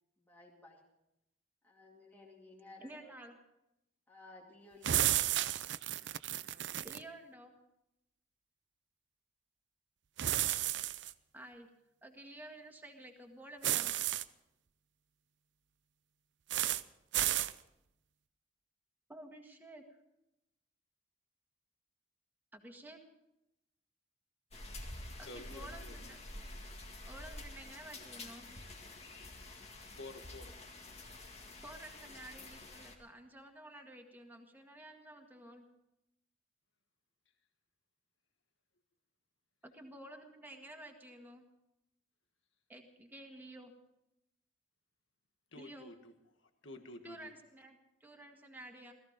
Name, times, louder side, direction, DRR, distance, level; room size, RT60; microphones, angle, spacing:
voice 1, 0.2-0.8 1.6-3.2 4.1-5.1, left 2 dB, 10° left, -3 dB, 2.3 m, -56 dB
voice 2, 2.8-3.4 6.8-7.5 11.3-11.7 12.0-13.9 19.1-20.0 22.5-23.0 25.2-26.2 27.0-28.5 31.6-35.6 39.6-41.4 42.7-43.7 45.5-45.9 47.0-48.9, right 1 dB, 10° right, 2 dB, 1.8 m, -52 dB
sound 1, 4.8-7.0 10.2-11.1 13.6-14.2 16.5-16.8 17.1-17.5, right 13 dB, 65° right, 0.5 m, -32 dB
sound 2, 24.5-32.9, left 2 dB, 35° left, 2.1 m, -49 dB
voice 3, 25.2-26.2 29.5-30.5 45.5-46.1 46.4-47.3, left 2 dB, 80° left, 7 dB, 1.7 m, -51 dB
17.5 x 14.5 x 5.2 m, 0.86 s
head